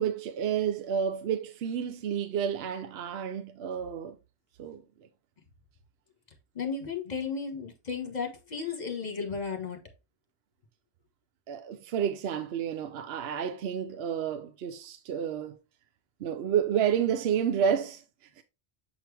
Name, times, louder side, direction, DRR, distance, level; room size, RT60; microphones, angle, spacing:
voice 1, 0.0-4.2 4.6-4.8 11.5-15.6 16.2-18.0 18.4-18.5, right 8 dB, 75° right, 0.8 m, -30 dB
voice 2, 6.5-9.8, left 5 dB, 40° left, 1.5 m, -34 dB
7.5 x 4.5 x 3.4 m
omnidirectional pair, 1.1 m